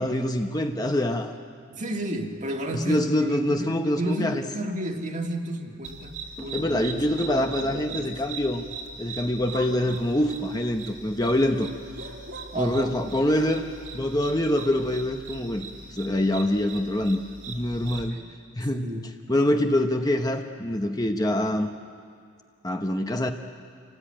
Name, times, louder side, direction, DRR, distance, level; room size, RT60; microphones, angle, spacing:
voice 1, 0.0-1.3 2.7-4.4 6.4-8.6 9.0-11.7 12.6-13.6 13.9-17.2 17.5-18.2 18.5-18.9 19.3-21.7 22.6-23.3, left 1 dB, 20° left, 5 dB, 0.9 m, -25 dB
voice 2, 1.7-8.1 12.5-13.0 18.1-18.3 18.7-19.1, right 1 dB, 40° right, 3 dB, 1.8 m, -32 dB
sound 1, 5.8-18.1, right 3 dB, 75° right, 2.8 m, -40 dB
27.0 x 18.0 x 8.9 m, 2.2 s
head